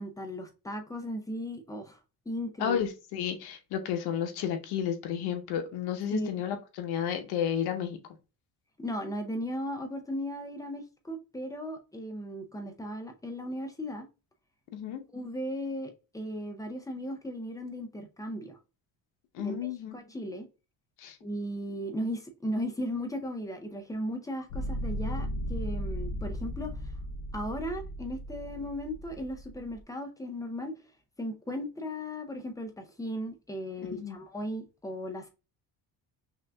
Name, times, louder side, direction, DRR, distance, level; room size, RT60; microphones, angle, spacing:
voice 1, 0.0-2.0 2.3-2.8 6.1-6.4 8.8-14.1 15.1-18.6 19.4-20.5 21.2-26.7 27.3-30.7 31.2-35.3, equal, 10° left, 0.5 m, -36 dB
voice 2, 2.6-8.0 14.7-15.0 19.3-20.0 21.0-21.2 33.9-34.2, left 9 dB, 90° left, 0.9 m, -32 dB
sound 1, 24.5-29.8, equal, 65° left, 0.6 m, -36 dB
5.7 x 2.4 x 2.2 m
cardioid pair, 145°, 37 cm